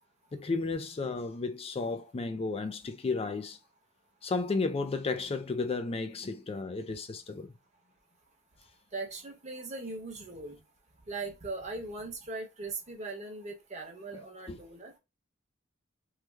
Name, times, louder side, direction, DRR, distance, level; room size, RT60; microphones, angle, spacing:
voice 1, 0.3-3.6 4.2-7.5 14.5-14.6, left 3 dB, 25° left, 0.4 m, -33 dB
voice 2, 8.9-10.6 11.1-14.9, right 3 dB, 35° right, 1.0 m, -39 dB
3.2 x 2.1 x 3.3 m
head